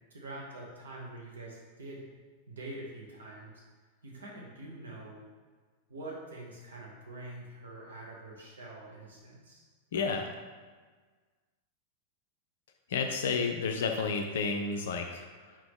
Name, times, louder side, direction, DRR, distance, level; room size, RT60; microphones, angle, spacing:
voice 1, 0.1-2.0 2.5-3.6 4.0-5.2 5.9-9.6 9.9-10.1, right 2 dB, 70° right, -3 dB, 1.0 m, -45 dB
voice 2, 9.9-10.3 12.9-15.2, left 5 dB, 60° left, 4 dB, 0.3 m, -31 dB
4.6 x 2.9 x 3.6 m, 1.5 s
figure-of-eight pair, 90°, 0 cm